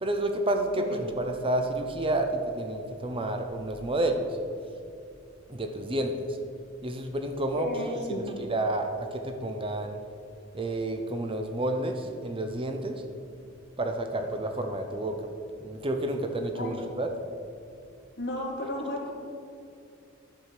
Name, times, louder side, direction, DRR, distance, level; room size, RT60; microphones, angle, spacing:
voice 1, 0.0-4.3 5.5-6.1 6.8-7.8 8.1-10.0 10.5-13.0 13.8-15.2 15.6-17.1, right 1 dB, 25° right, 5 dB, 0.7 m, -30 dB
voice 2, 7.6-8.3 16.6-16.8 18.2-19.1, left 1 dB, 55° left, -2 dB, 2.3 m, -33 dB
11.0 x 4.9 x 7.4 m, 2.6 s
head